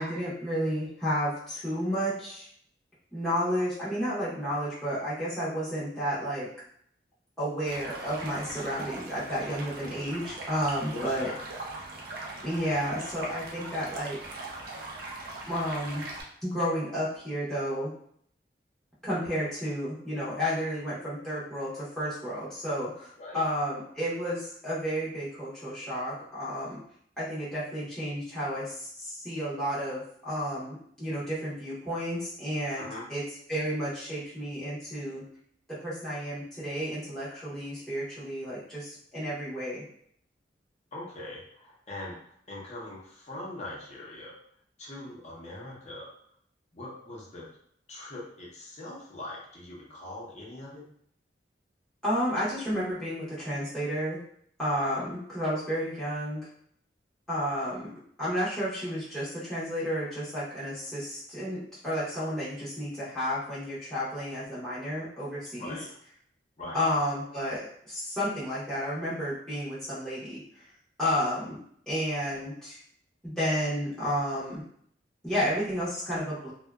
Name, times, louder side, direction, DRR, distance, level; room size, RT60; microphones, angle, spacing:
voice 1, 0.0-2.5 3.1-6.5 7.4-11.3 12.4-14.2 15.5-16.0 16.4-17.9 19.0-26.8 27.2-33.2 33.5-35.2 35.8-39.8 52.0-54.2 54.6-56.4 57.3-57.9 58.2-61.6 61.8-65.8 66.7-70.4 71.0-71.6 71.9-72.8 73.2-74.6 75.2-76.5, equal, 5° left, -11 dB, 0.7 m, -31 dB
Stream, 7.7-16.2, right 2 dB, 60° right, 0.5 m, -41 dB
voice 2, 10.9-11.4 23.2-23.4 32.7-33.0 40.9-42.2 42.5-44.4 44.8-46.1 46.7-47.6 47.9-50.8 65.6-65.9 66.6-66.8, left 1 dB, 40° left, -4 dB, 0.7 m, -41 dB
2.6 x 2.1 x 2.3 m, 0.64 s
head